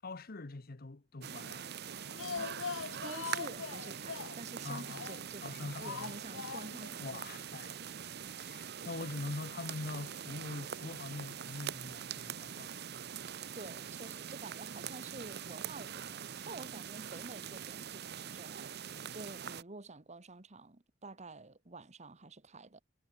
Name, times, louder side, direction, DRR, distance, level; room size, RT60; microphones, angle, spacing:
voice 1, 0.0-1.7 4.6-5.1 5.4-6.1 7.0-7.8 8.3-12.8, left 2 dB, 50° left, 1.0 m, -43 dB
sound 1, 1.2-19.6, right 8 dB, 55° right, 0.8 m, -43 dB
Speech, 1.9-5.4 5.8-7.0 7.2-7.3 7.6-7.7, left 5 dB, 75° left, 0.8 m, -42 dB
voice 2, 2.9-7.2 7.5-7.8 13.5-18.7 19.1-22.8, right 3 dB, 35° right, 1.5 m, -49 dB
head